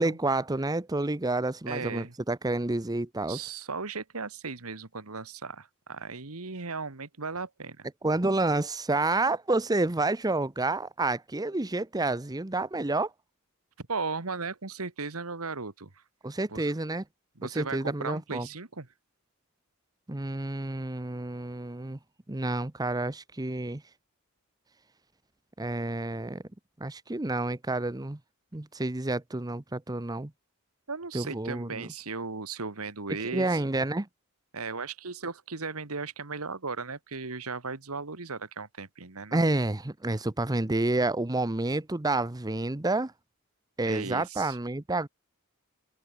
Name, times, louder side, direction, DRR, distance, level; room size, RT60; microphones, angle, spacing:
voice 1, 0.0-3.5 8.0-13.1 16.2-17.0 17.6-18.5 20.1-22.0 22.3-23.8 25.6-26.4 26.8-28.2 28.5-30.3 31.1-31.9 33.2-34.1 39.3-43.1 43.8-45.1, right 2 dB, 20° right, 0.8 m, -29 dB
voice 2, 1.7-2.1 3.3-7.9 13.9-15.9 16.5-16.7 17.3-18.9 30.9-33.6 34.5-39.4 43.8-44.6, right 4 dB, 85° right, 1.8 m, -36 dB
head